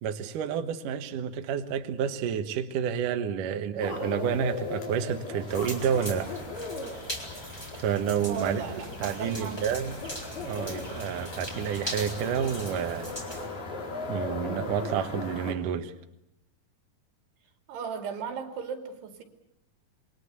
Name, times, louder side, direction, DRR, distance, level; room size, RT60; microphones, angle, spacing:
voice 1, 0.0-6.4 7.7-8.6 9.0-10.0 10.4-13.1 14.1-15.9, right 8 dB, 60° right, 6 dB, 2.6 m, -29 dB
sound 1, 3.8-15.5, left 3 dB, 70° left, 6.1 m, -38 dB
sound 2, 5.5-13.5, equal, 5° left, 3.5 m, -40 dB
voice 2, 8.2-9.6 17.7-19.2, right 6 dB, 85° right, 6 dB, 4.7 m, -36 dB
27.0 x 22.0 x 8.3 m, 0.80 s
omnidirectional pair, 4.6 m